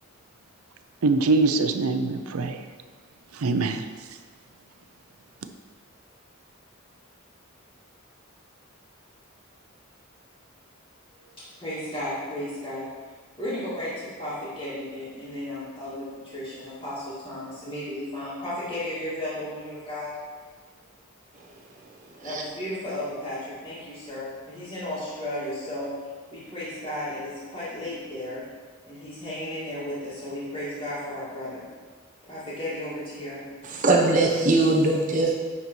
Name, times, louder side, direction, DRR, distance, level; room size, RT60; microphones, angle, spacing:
voice 1, 1.0-2.6 3.3-3.8, right 3 dB, 85° right, 8 dB, 0.5 m, -23 dB
voice 2, 11.6-12.9 13.4-16.1 16.3-20.1 22.2-25.9 26.3-28.4 28.9-31.6 32.3-33.4, left 1 dB, 25° left, -11 dB, 2.2 m, -34 dB
voice 3, 33.6-35.3, right 2 dB, 35° right, -1 dB, 0.8 m, -21 dB
9.9 x 4.1 x 4.5 m, 1.5 s
head